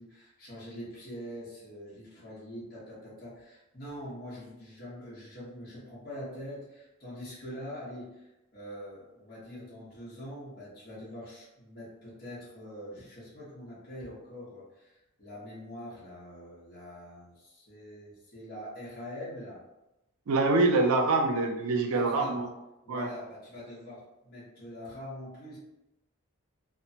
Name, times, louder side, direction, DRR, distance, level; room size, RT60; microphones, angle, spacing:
voice 1, 0.0-19.6 21.9-22.4 22.8-25.6, equal, 40° left, -9 dB, 1.0 m, -44 dB
voice 2, 20.3-22.5 22.9-23.1, right 3 dB, 80° right, 3 dB, 0.4 m, -25 dB
3.0 x 2.1 x 2.7 m, 0.95 s
head